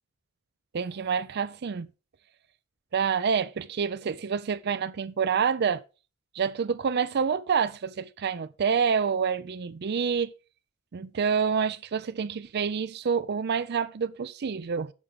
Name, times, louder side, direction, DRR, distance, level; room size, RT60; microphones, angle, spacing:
voice 1, 0.7-1.9 2.9-5.8 6.3-10.3 10.9-14.9, right 6 dB, 50° right, 0.4 m, -27 dB
12.5 x 5.4 x 4.9 m
head